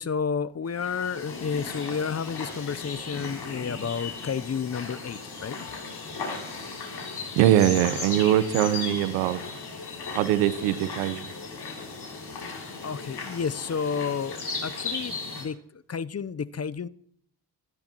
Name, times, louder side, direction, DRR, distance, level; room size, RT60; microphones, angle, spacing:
voice 1, 0.0-5.7 12.8-16.9, left 6 dB, 30° left, 0.8 m, -31 dB
sound 1, 0.7-15.4, left 4 dB, 55° left, 7.2 m, -36 dB
voice 2, 7.3-9.5 10.1-11.3, right 12 dB, 85° right, 1.1 m, -22 dB
29.0 x 14.0 x 3.0 m
hypercardioid pair, 45°, 47 cm